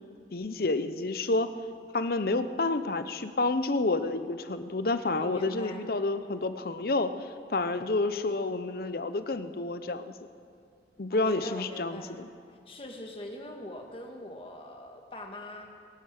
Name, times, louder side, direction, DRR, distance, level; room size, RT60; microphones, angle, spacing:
voice 1, 0.3-1.5 1.9-10.1 11.0-12.3, left 2 dB, 55° left, 11 dB, 0.7 m, -29 dB
voice 2, 5.2-5.8 11.1-12.2 12.7-15.7, left 1 dB, 30° left, 3 dB, 1.6 m, -42 dB
22.5 x 9.1 x 6.5 m, 2.2 s
head